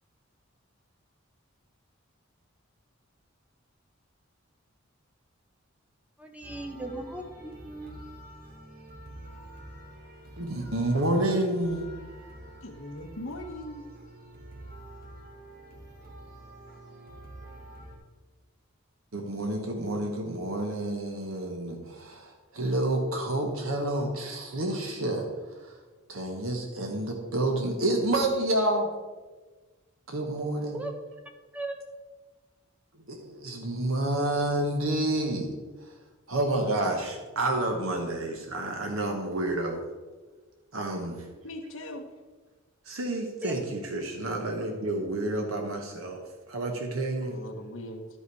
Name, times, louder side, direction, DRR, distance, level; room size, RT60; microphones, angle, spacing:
voice 1, 6.2-8.0 30.6-30.9 31.5-31.8 43.4-43.6, right 1 dB, 5° right, 4 dB, 1.0 m, -37 dB
sound 1, 6.4-18.0, right 1 dB, 50° right, 1.9 m, -47 dB
voice 2, 10.4-11.9 19.1-25.3 25.6-25.7 26.1-28.9 30.1-30.8 33.0-35.5 36.3-39.8 40.7-41.2 42.9-46.2 46.5-47.4, right 1 dB, 90° right, 2 dB, 1.2 m, -29 dB
voice 3, 12.6-13.8 41.4-42.0 47.2-48.1, left 1 dB, 70° left, 1 dB, 0.9 m, -40 dB
12.0 x 5.6 x 4.7 m, 1.3 s
head